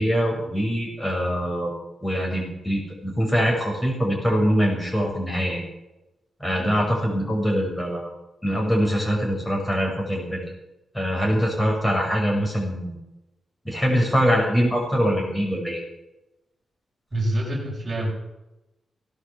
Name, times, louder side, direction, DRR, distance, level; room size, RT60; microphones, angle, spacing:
voice 1, 0.0-1.7 2.0-5.6 6.4-8.1 8.4-10.4 10.9-13.0 13.6-15.8, equal, 10° left, -1 dB, 6.3 m, -23 dB
voice 2, 17.1-18.1, right 1 dB, 25° right, -4 dB, 6.1 m, -26 dB
17.5 x 11.5 x 7.2 m, 0.95 s
wide cardioid pair, 155°, 0 cm